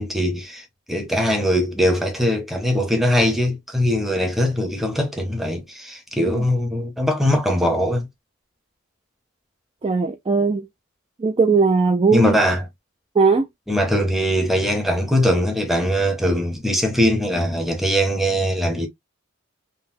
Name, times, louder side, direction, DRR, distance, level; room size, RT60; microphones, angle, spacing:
voice 1, 0.0-8.1 12.1-12.6 13.7-18.9, equal, ahead, 0.7 m, -21 dB
voice 2, 9.8-10.7 11.2-12.4 13.1-13.5, right 4 dB, 25° right, 0.4 m, -18 dB
3.8 x 2.1 x 2.5 m
head